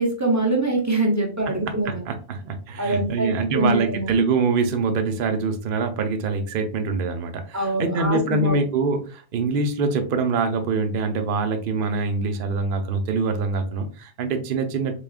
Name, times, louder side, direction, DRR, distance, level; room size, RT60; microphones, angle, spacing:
voice 1, 0.0-2.0 2.8-4.1 7.5-8.6, right 2 dB, 20° right, 0 dB, 0.6 m, -24 dB
voice 2, 1.7-15.0, right 4 dB, 55° right, 6 dB, 0.7 m, -24 dB
4.1 x 3.5 x 2.4 m, 0.38 s
omnidirectional pair, 1.2 m